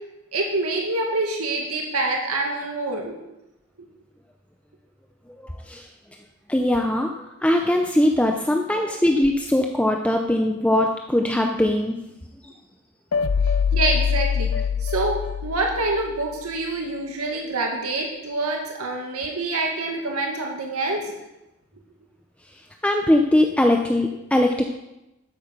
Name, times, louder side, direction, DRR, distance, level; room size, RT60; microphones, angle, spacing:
voice 1, 0.3-3.2 8.7-8.8 13.7-14.5 14.8-15.2 15.4-21.1, right 2 dB, 90° right, 0 dB, 1.9 m, -26 dB
voice 2, 5.4-5.8 6.5-12.0 22.8-24.6, left 1 dB, 5° left, 3 dB, 0.6 m, -21 dB
sound 1, 13.1-16.3, left 7 dB, 75° left, 0.5 m, -24 dB
12.5 x 8.6 x 5.2 m, 0.94 s
head